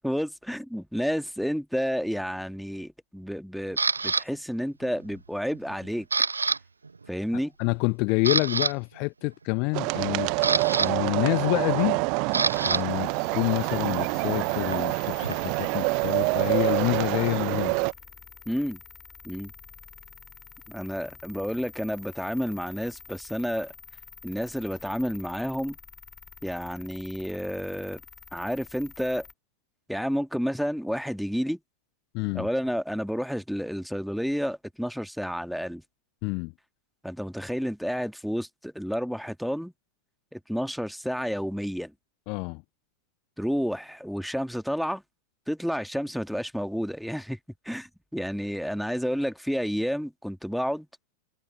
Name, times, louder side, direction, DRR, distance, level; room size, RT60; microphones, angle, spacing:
voice 1, 0.0-6.1 7.1-7.5 18.5-18.8 19.2-19.5 20.7-23.7 24.2-25.8 26.4-28.0 28.3-29.3 29.9-31.6 32.3-35.8 37.0-39.7 40.3-41.9 43.4-45.0 45.5-47.4 47.7-50.9, equal, ahead, 1.9 m, -30 dB
Camera, 3.8-4.2 4.8-5.2 5.5-6.6 6.8-7.1 7.6-7.7 8.1-8.7 9.9-12.8 13.1-15.7, right 4 dB, 75° right, 1.0 m, -28 dB
voice 2, 7.6-10.3 10.8-12.0 12.6-17.8 32.1-32.5 36.2-36.5 42.3-42.6, left 32 dB, 45° left, 1.0 m, -27 dB
sound 1, 9.7-17.9, right 34 dB, 45° right, 0.6 m, -26 dB
sound 2, 12.5-29.3, left 5 dB, 15° left, 5.1 m, -48 dB
figure-of-eight pair, 90°, 0 cm